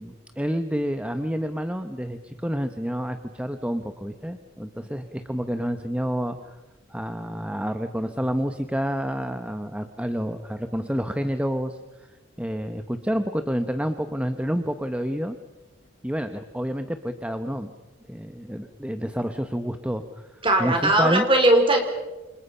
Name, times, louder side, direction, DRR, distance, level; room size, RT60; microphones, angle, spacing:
voice 1, 0.0-6.4 6.9-11.8 12.4-15.4 16.0-17.7 18.1-20.0 20.6-21.2, equal, 5° right, 8 dB, 1.0 m, -28 dB
voice 2, 20.4-21.8, right 1 dB, 25° right, 4 dB, 4.4 m, -19 dB
29.0 x 26.5 x 5.7 m, 1.1 s
head